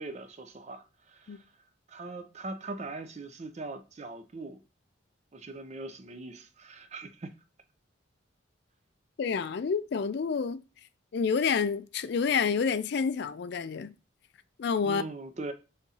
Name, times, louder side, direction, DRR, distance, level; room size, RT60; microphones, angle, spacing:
voice 1, 0.0-1.4 1.9-4.6 5.3-7.3 14.8-15.5, right 3 dB, 35° right, 0.5 m, -41 dB
voice 2, 9.2-10.6 11.1-13.9 14.6-15.0, left 6 dB, 55° left, 0.3 m, -28 dB
5.3 x 3.5 x 2.8 m
head